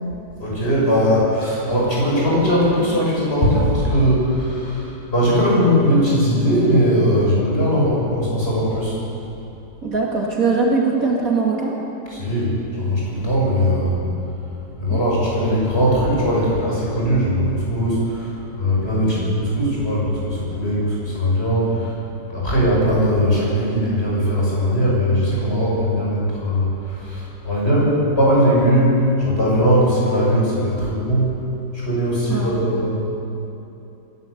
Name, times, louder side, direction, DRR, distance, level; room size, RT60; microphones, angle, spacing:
voice 1, 0.4-9.0 12.1-14.0 14.8-22.0 22.3-31.4 31.7-32.9, equal, 35° left, -6 dB, 7.1 m, -19 dB
voice 2, 9.8-11.8 14.9-15.0 18.9-19.2 32.3-32.6, right 4 dB, 50° right, -2 dB, 2.7 m, -21 dB
25.0 x 13.0 x 8.3 m, 2.9 s
omnidirectional pair, 2.0 m